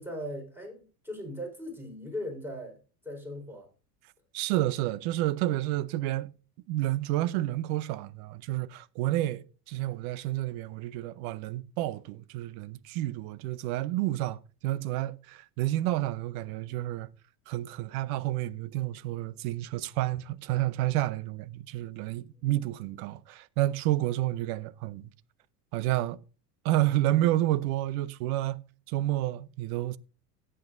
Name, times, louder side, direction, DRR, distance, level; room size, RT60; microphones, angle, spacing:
voice 1, 0.0-2.8 3.0-3.7 22.3-22.4, equal, 5° right, 4.6 m, -39 dB
voice 2, 4.3-6.3 6.7-17.1 17.5-25.1 25.7-26.2 26.6-28.6 28.9-30.0, right 15 dB, 65° right, 0.8 m, -30 dB
16.5 x 7.8 x 2.6 m
hypercardioid pair, 100°, 47 cm